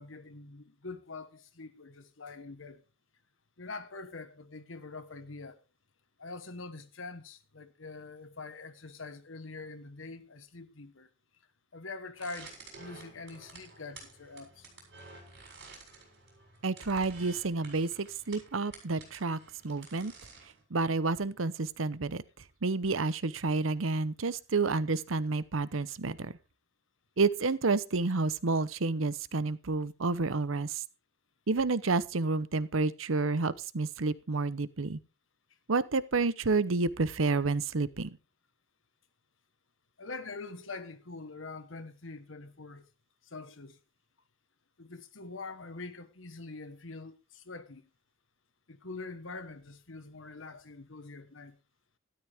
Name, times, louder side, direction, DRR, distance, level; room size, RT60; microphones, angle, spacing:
voice 1, 0.0-2.8 3.6-5.6 6.2-11.1 11.7-14.7 40.0-42.9 43.2-43.8 44.8-47.8 48.7-51.6, left 3 dB, 75° left, 1.4 m, -44 dB
sound 1, 12.1-20.6, right 3 dB, 60° right, 6.8 m, -51 dB
voice 2, 16.6-19.4 19.6-20.1 20.7-22.2 22.6-26.3 27.2-30.8 31.5-35.0 35.7-38.2, right 3 dB, 85° right, 0.9 m, -30 dB
13.0 x 12.5 x 3.6 m
head